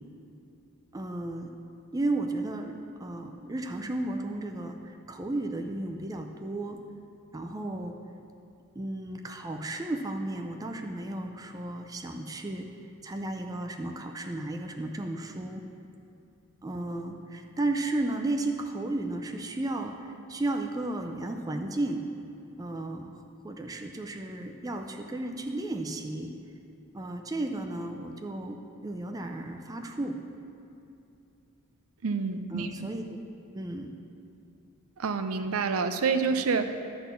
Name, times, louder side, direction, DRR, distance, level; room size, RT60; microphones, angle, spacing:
voice 1, 0.9-1.6 1.9-6.8 7.3-8.0 8.8-12.7 13.0-15.6 16.6-22.0 22.6-23.2 23.4-26.3 26.9-30.2 32.5-33.0 33.5-33.9, right 2 dB, 15° right, 4 dB, 0.4 m, -34 dB
voice 2, 32.0-32.9 35.0-36.7, right 5 dB, 70° right, 9 dB, 0.5 m, -28 dB
12.0 x 4.2 x 6.7 m, 2.7 s
head